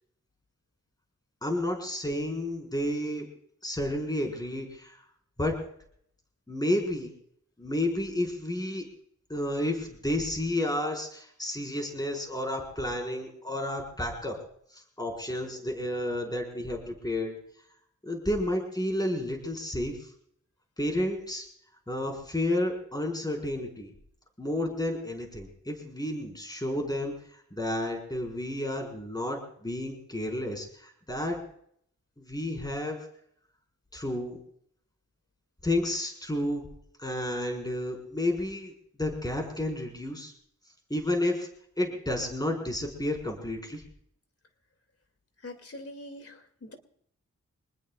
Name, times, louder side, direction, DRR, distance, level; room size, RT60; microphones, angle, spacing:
voice 1, 1.4-3.3 3.6-5.0 5.4-5.6 6.5-7.1 7.6-8.8 9.3-14.4 14.7-17.3 18.0-20.1 20.8-21.4 21.9-23.9 24.4-31.4 32.2-33.0 33.9-34.4 35.6-36.7 37.0-38.7 39.0-40.3 40.9-41.5 41.8-43.8, left 1 dB, 15° left, 1 dB, 5.2 m, -31 dB
voice 2, 45.4-46.7, left 1 dB, 55° left, 6 dB, 2.7 m, -43 dB
26.0 x 20.0 x 2.5 m, 0.67 s
wide cardioid pair, 95°, 29 cm